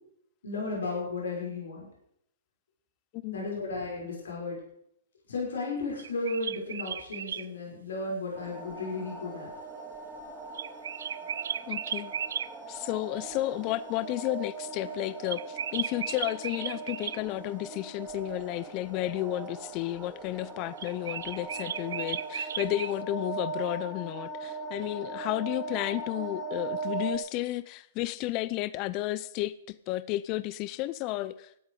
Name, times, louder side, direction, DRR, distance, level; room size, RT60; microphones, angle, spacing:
voice 1, 0.4-1.9 3.3-4.6 5.3-9.5, left 3 dB, 75° left, 6.1 m, -34 dB
voice 2, 3.1-3.5 11.7-12.1 12.7-31.5, left 16 dB, 40° left, 0.6 m, -32 dB
sound 1, 6.0-7.5 10.5-12.5 15.3-17.2 20.8-23.0, right 8 dB, 70° right, 0.5 m, -35 dB
sound 2, 8.4-27.2, right 4 dB, 15° right, 2.4 m, -40 dB
16.5 x 12.0 x 5.0 m
hypercardioid pair, 120°, 0 cm